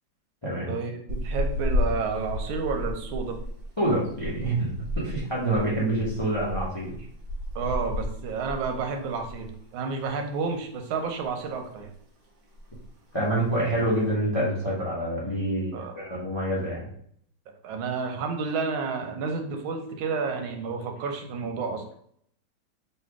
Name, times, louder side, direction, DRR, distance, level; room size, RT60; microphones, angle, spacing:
voice 1, 0.7-3.4 7.5-11.9 15.7-16.0 17.6-21.9, right 5 dB, 90° right, 4 dB, 1.5 m, -30 dB
sound 1, 1.1-9.6 9.9-10.1 10.5-11.3 11.6-12.0 12.3-12.4 12.5-13.0 13.5-14.0, left 1 dB, 65° right, 1.5 m, -33 dB
voice 2, 3.8-4.7 5.0-7.0 13.1-16.9, right 1 dB, 30° left, -6 dB, 0.4 m, -27 dB
3.3 x 2.7 x 4.6 m, 0.66 s
omnidirectional pair, 2.1 m